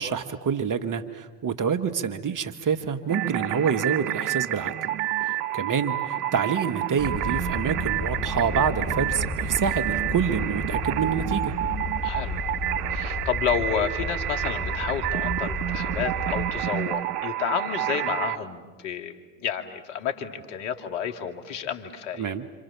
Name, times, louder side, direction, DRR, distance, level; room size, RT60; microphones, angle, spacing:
voice 1, 0.0-4.7 5.5-11.5 22.2-22.4, right 6 dB, 40° right, 9 dB, 1.9 m, -27 dB
sound 1, 3.1-18.4, right 13 dB, 90° right, 0.8 m, -29 dB
voice 2, 3.4-3.7 12.0-12.5 12.9-22.3, left 7 dB, 75° left, 5 dB, 2.6 m, -31 dB
sound 2, 7.0-16.5, left 2 dB, ahead, 7.8 m, -33 dB
30.0 x 26.5 x 7.1 m, 1.3 s
hypercardioid pair, 60°, 46 cm